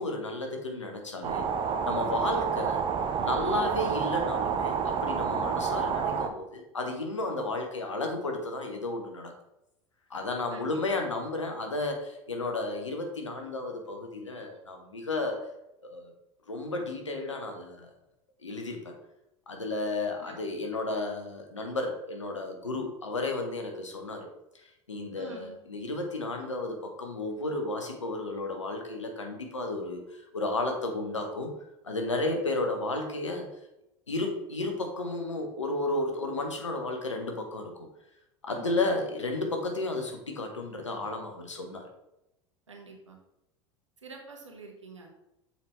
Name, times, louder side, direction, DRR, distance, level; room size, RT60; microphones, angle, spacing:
voice 1, 0.0-1.5 1.9-2.8 3.2-9.3 10.1-15.4 15.8-16.1 16.5-17.9 18.4-18.9 19.5-24.3 24.9-31.5 31.8-33.5 34.1-37.9 38.4-41.9, left 2 dB, 90° left, 3 dB, 1.0 m, -33 dB
sound 1, 1.2-6.3, right 7 dB, 35° right, 0.6 m, -29 dB
voice 2, 10.5-11.0 20.2-20.4 25.1-25.6 38.5-38.8 42.7-43.2 44.0-45.1, right 4 dB, 90° right, 1 dB, 1.2 m, -47 dB
6.8 x 4.5 x 3.1 m, 0.89 s
figure-of-eight pair, 80°, 15 cm